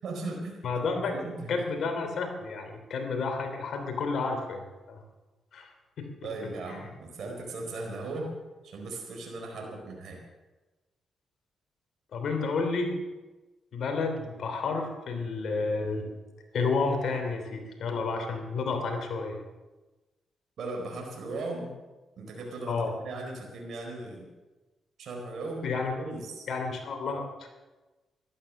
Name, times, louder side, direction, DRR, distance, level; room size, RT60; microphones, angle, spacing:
voice 1, 0.0-1.5 6.2-8.3 8.6-10.2 20.6-21.7 22.2-24.3 25.0-25.7 26.0-26.5, right 2 dB, 70° right, 0 dB, 4.3 m, -37 dB
voice 2, 0.6-1.1 1.5-5.0 5.5-5.7 6.0-6.1 6.7-6.9 12.1-12.9 13.7-16.1 16.5-19.4 22.7-22.9 25.6-25.9 26.5-27.5, left 4 dB, 70° left, 5 dB, 3.2 m, -31 dB
14.5 x 12.5 x 6.6 m, 1.2 s
cardioid pair, 70°, 0 cm